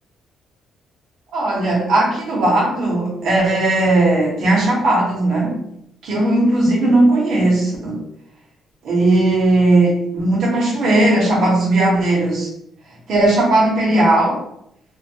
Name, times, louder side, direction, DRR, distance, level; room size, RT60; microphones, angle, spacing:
voice 1, 1.3-5.6 6.0-8.0 8.8-12.5 13.1-14.4, right 2 dB, 55° right, -4 dB, 0.7 m, -17 dB
2.2 x 2.1 x 2.7 m, 0.77 s
cardioid pair, 170°, 0 cm